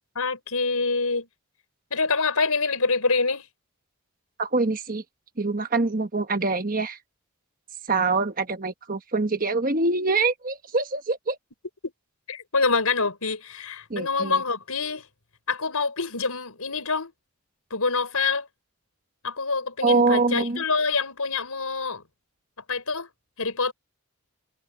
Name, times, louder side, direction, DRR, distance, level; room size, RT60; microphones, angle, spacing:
voice 1, 0.1-1.3 1.9-3.4 12.3-15.1 15.5-17.1 17.7-18.5 19.2-22.0 22.7-23.1 23.4-23.7, left 4 dB, 85° left, 5.0 m, -26 dB
voice 2, 4.4-5.0 5.4-7.0 7.9-11.4 13.9-14.4 19.8-20.6, right 3 dB, 40° right, 1.3 m, -24 dB
head